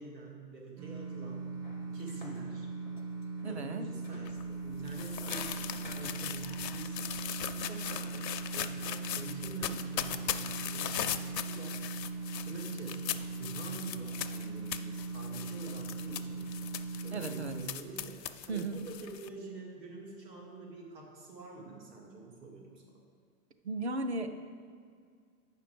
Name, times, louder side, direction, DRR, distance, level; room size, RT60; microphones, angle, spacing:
voice 1, 0.0-2.7 3.5-11.8 12.4-16.5 17.0-23.0, right 4 dB, 80° right, -1 dB, 2.2 m, -47 dB
sound 1, 0.8-17.6, right 4 dB, 65° right, 1.8 m, -40 dB
sound 2, 1.6-4.7 5.3-9.2, left 2 dB, 35° left, 0.4 m, -53 dB
voice 2, 3.4-3.9 17.1-17.6 18.5-18.8 23.6-24.3, right 3 dB, 45° right, 8 dB, 0.4 m, -35 dB
paper scrunching, 4.2-19.3, left 11 dB, 85° left, 0.7 m, -39 dB
8.8 x 5.7 x 5.0 m, 2.1 s
hypercardioid pair, 180°, 49 cm